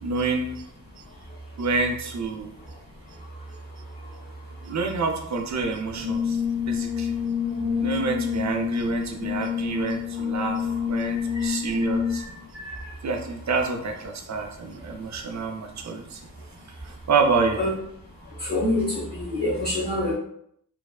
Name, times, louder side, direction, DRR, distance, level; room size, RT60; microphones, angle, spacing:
voice 1, 0.0-0.6 1.6-2.5 4.6-7.1 7.8-12.2 13.0-16.2 16.8-17.6, right 4 dB, 50° right, 4 dB, 0.6 m, -28 dB
Brass instrument, 5.9-12.3, left 7 dB, 80° left, 0.6 m, -28 dB
voice 2, 12.6-12.9 17.6-17.7 18.4-20.2, left 1 dB, 25° left, -8 dB, 1.2 m, -26 dB
3.2 x 2.0 x 2.3 m, 0.71 s
cardioid pair, 55°, 37 cm